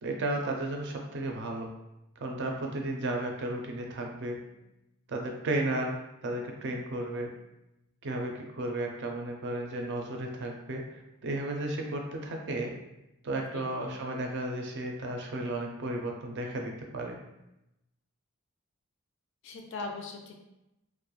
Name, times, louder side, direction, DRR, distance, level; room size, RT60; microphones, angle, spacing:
voice 1, 0.0-1.7 2.2-4.4 5.1-7.3 8.0-12.7 13.2-17.2, right 1 dB, 55° right, 1 dB, 0.4 m, -34 dB
voice 2, 13.5-13.9 19.4-20.3, left 3 dB, 55° left, 3 dB, 0.4 m, -40 dB
2.3 x 2.0 x 2.9 m, 0.91 s
head